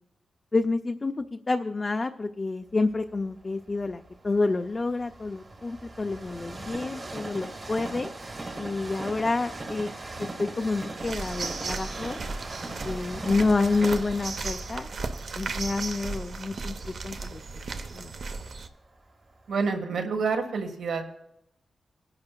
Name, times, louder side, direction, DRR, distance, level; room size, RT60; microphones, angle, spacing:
voice 1, 0.5-8.1 8.6-9.9 10.2-12.2 12.8-14.9 15.4-17.4 17.9-18.1, left 3 dB, 25° left, 6 dB, 0.4 m, -28 dB
Train, 2.9-18.9 19.4-19.5, right 2 dB, 30° right, 1.1 m, -40 dB
sound 1, 11.0-18.7, right 4 dB, 55° right, 0.7 m, -35 dB
voice 2, 19.5-21.0, right 4 dB, 85° right, 4 dB, 1.4 m, -28 dB
22.0 x 10.5 x 2.2 m, 0.80 s
wide cardioid pair, 155°, 0 cm